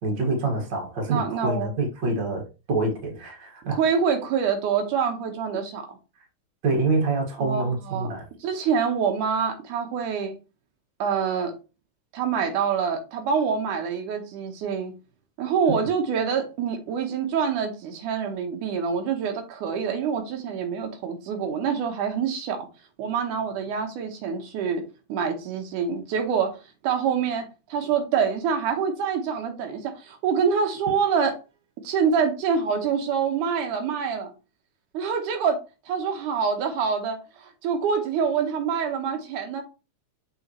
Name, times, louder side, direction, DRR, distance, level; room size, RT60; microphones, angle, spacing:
voice 1, 0.0-3.8 6.6-8.2, right 3 dB, 40° right, 1.8 m, -26 dB
voice 2, 1.1-1.7 3.7-5.9 7.4-8.1 8.4-10.3 11.0-11.5 12.1-14.9 15.4-22.7 23.0-24.8 25.1-26.6 26.8-31.4 31.8-34.3 34.9-35.6 35.9-39.6, right 6 dB, 85° right, 2.6 m, -26 dB
7.0 x 4.8 x 3.0 m
omnidirectional pair, 3.5 m